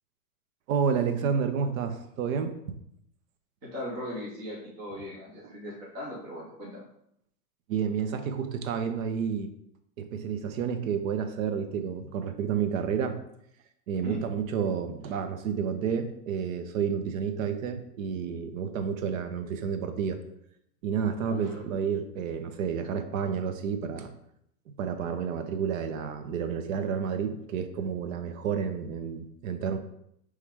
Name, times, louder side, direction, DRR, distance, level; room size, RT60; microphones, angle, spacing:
voice 1, 0.7-2.5 7.7-9.5 10.0-13.2 13.9-20.2 20.8-24.1 24.8-29.8, right 7 dB, 60° right, 8 dB, 0.7 m, -30 dB
voice 2, 3.6-6.8 14.0-14.2 21.3-21.6, left 1 dB, 10° right, -5 dB, 0.3 m, -38 dB
4.5 x 3.2 x 3.5 m, 0.74 s
hypercardioid pair, 135°, 47 cm